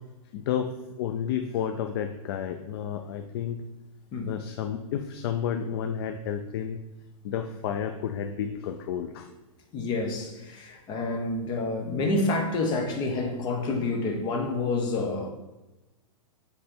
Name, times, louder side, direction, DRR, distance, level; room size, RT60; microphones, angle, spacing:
voice 1, 0.3-0.7 1.0-3.6 4.3-6.8 7.2-9.3, left 8 dB, 45° left, 0.4 m, -31 dB
voice 2, 9.7-15.3, left 2 dB, 25° left, 0.9 m, -28 dB
7.5 x 3.3 x 4.3 m
hypercardioid pair, 150°, 18 cm